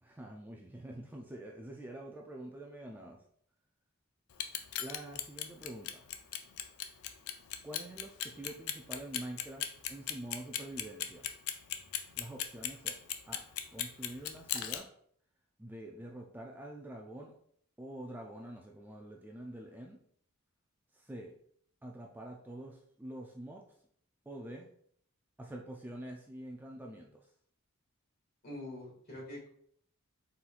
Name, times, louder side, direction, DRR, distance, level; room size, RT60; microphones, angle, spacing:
voice 1, 0.0-3.2 4.8-6.0 7.6-11.3 12.1-13.0 13.3-13.4 13.7-14.9 15.6-17.4 17.8-20.0 20.9-21.3 21.8-23.6 24.3-24.7 25.4-27.3, right 1 dB, 10° right, 0 dB, 0.3 m, -46 dB
Clock, 4.3-14.8, left 11 dB, 85° left, 0.5 m, -36 dB
voice 2, 28.4-29.5, left 1 dB, 45° left, -3 dB, 1.8 m, -44 dB
4.2 x 3.9 x 2.4 m, 0.63 s
head